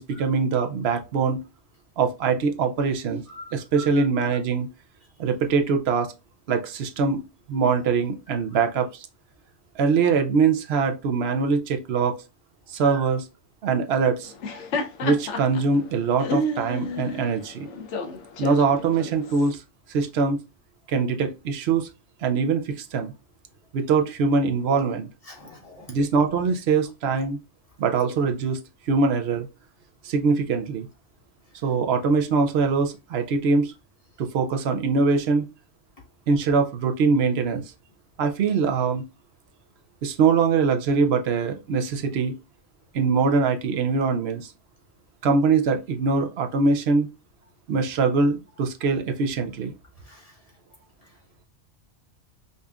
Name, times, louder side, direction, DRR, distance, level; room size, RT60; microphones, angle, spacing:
voice 1, 0.0-1.4 2.0-3.2 3.5-4.7 5.2-6.1 6.5-7.2 7.5-9.1 9.8-12.2 12.7-13.2 13.6-14.3 15.0-17.7 18.4-19.6 19.9-20.4 20.9-21.9 22.2-23.1 23.7-25.1 25.9-27.4 27.8-28.6 28.9-29.5 30.0-30.9 31.6-33.7 34.2-35.5 36.3-37.6 38.2-39.0 40.0-42.3 42.9-44.4 45.2-47.1 47.7-49.7, right 4 dB, 65° right, 0.8 m, -23 dB
Laughter, 14.2-19.5, left 1 dB, 80° left, 1.0 m, -31 dB
voice 2, 25.3-25.9 50.1-50.3, equal, 35° left, 1.0 m, -43 dB
5.3 x 2.5 x 2.3 m
omnidirectional pair, 1.2 m